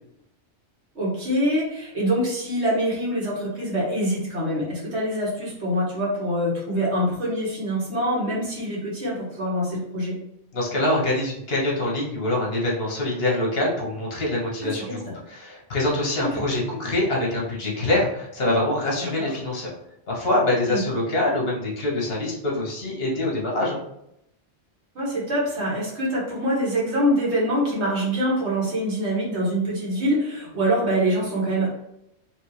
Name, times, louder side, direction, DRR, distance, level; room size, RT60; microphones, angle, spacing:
voice 1, 1.0-10.1 14.6-15.0 19.2-19.3 20.7-20.8 25.0-31.7, equal, 70° right, -5 dB, 1.8 m, -25 dB
voice 2, 10.5-19.7 20.1-23.8, left 1 dB, 60° left, -3 dB, 1.5 m, -25 dB
4.2 x 3.1 x 3.2 m, 0.79 s
omnidirectional pair, 1.2 m